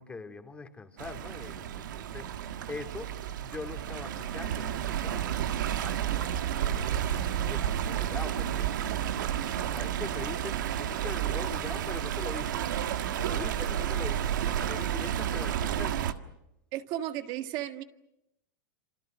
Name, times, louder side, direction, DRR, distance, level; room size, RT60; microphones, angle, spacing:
voice 1, 0.0-3.1 3.4-6.3 6.7-8.7 9.7-12.7 13.2-16.1, left 3 dB, 10° left, 6 dB, 2.7 m, -43 dB
Stream, 1.0-16.1, right 10 dB, 85° right, 1.7 m, -31 dB
voice 2, 16.7-17.8, right 13 dB, 45° right, 8 dB, 1.8 m, -34 dB
29.5 x 27.0 x 6.3 m, 0.86 s
supercardioid pair, 140°, 10 cm